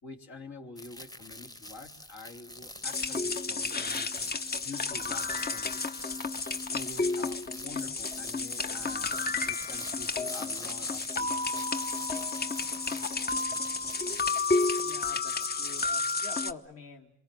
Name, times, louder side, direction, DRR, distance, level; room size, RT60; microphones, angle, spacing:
voice 1, 0.0-4.1 4.6-6.0 6.7-11.7, left 3 dB, 65° left, 2 dB, 3.2 m, -47 dB
sound 1, 0.8-16.1, left 1 dB, 10° left, 1.2 m, -46 dB
sound 2, 2.8-16.5, left 3 dB, 30° left, 1.0 m, -31 dB
sound 3, 4.9-10.2, left 2 dB, 85° left, 6.2 m, -56 dB
voice 2, 14.8-17.1, left 3 dB, 50° left, 1 dB, 2.1 m, -47 dB
27.0 x 22.5 x 7.6 m, 0.63 s
cardioid pair, 90°, 30 cm